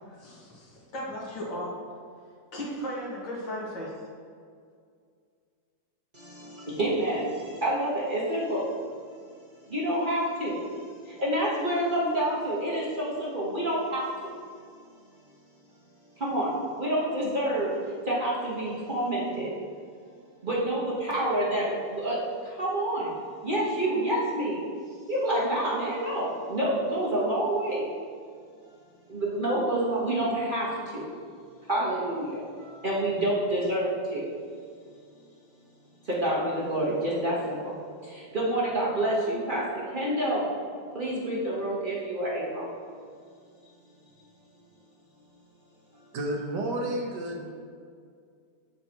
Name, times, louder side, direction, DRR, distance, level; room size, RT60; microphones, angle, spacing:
voice 1, 0.1-1.7 2.5-4.0, equal, 75° left, -5 dB, 2.4 m, -36 dB
voice 2, 6.1-8.7 9.7-10.6 11.0-14.3 16.2-17.7 18.0-19.5 20.4-22.2 22.4-23.1 23.4-24.6 25.1-27.8 29.1-31.1 31.7-34.3 36.0-37.7 38.0-40.4 40.9-42.7, right 1 dB, 30° right, -6 dB, 1.2 m, -28 dB
voice 3, 46.1-47.5, right 1 dB, 65° right, 1 dB, 1.4 m, -31 dB
7.8 x 6.7 x 3.0 m, 2.2 s
omnidirectional pair, 2.1 m